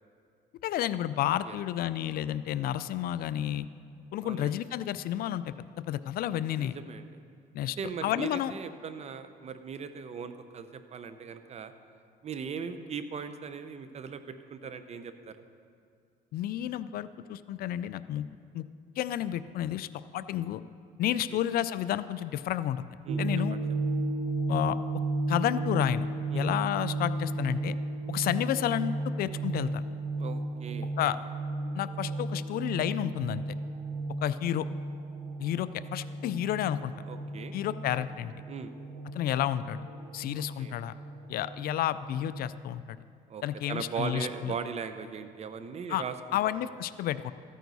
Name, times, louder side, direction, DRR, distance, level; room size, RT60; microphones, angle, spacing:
voice 1, 0.6-3.7 4.1-6.7 7.5-7.8 8.0-8.5 16.3-18.3 18.5-18.6 19.0-20.6 21.0-22.8 23.2-23.6 24.5-24.8 25.3-26.1 26.3-27.8 28.1-29.8 31.0-31.2 31.7-33.4 34.2-34.7 35.4-36.9 37.5-38.3 39.1-39.8 40.1-40.9 41.3-42.8 43.4-44.5 45.9-46.0 46.3-47.3, left 12 dB, 60° left, 15 dB, 0.4 m, -31 dB
voice 2, 4.2-4.6 6.5-7.1 7.8-11.7 12.2-15.4 21.3-21.4 23.0-23.2 23.5-23.6 26.3-26.5 30.2-31.1 37.1-37.5 38.5-38.7 40.4-40.7 43.3-43.4 43.7-46.1, right 6 dB, 40° right, 10 dB, 0.7 m, -39 dB
sound 1, 23.1-42.5, right 2 dB, 65° right, 1.2 m, -34 dB
14.0 x 9.2 x 4.1 m, 2.3 s
cardioid pair, 110°, 17 cm